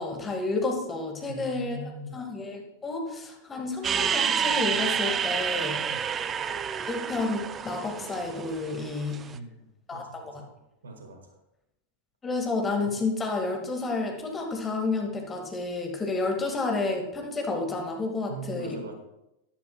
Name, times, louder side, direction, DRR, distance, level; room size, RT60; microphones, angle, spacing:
voice 1, 0.0-1.8 2.1-6.2 6.8-9.3 9.9-10.4 12.2-18.9, left 3 dB, 15° left, 2 dB, 1.9 m, -30 dB
voice 2, 1.3-2.2 5.9-6.1 9.3-10.5 10.8-11.4 18.3-18.9, right 2 dB, 70° right, 4 dB, 1.6 m, -41 dB
sound 1, 3.8-9.2, right 7 dB, 25° right, 0.4 m, -29 dB
12.5 x 10.5 x 2.3 m, 0.89 s
figure-of-eight pair, 90°, 0 cm